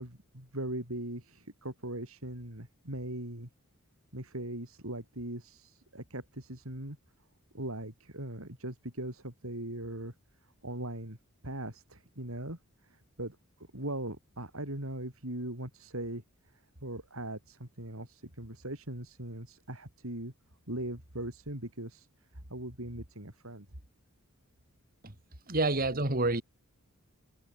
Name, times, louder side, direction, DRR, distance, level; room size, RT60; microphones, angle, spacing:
voice 1, 0.0-3.5 4.1-7.0 7.5-10.1 10.6-11.2 11.4-12.6 12.8-13.4 13.7-16.2 16.8-20.3 20.7-22.1 22.5-23.7, right 1 dB, 65° right, 6.0 m, -40 dB
voice 2, 25.5-26.4, right 2 dB, 40° right, 2.6 m, -28 dB
head